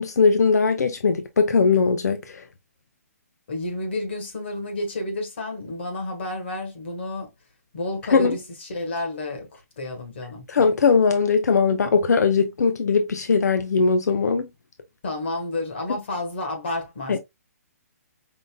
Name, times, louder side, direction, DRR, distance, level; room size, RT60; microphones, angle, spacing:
voice 1, 0.0-2.4 8.1-8.3 10.5-14.5 17.1-17.2, left 5 dB, 90° left, 0.6 m, -20 dB
voice 2, 3.5-7.3 7.7-10.5 15.0-17.2, left 2 dB, 45° left, 1.6 m, -30 dB
5.5 x 2.6 x 2.2 m
hypercardioid pair, 175°, 9 cm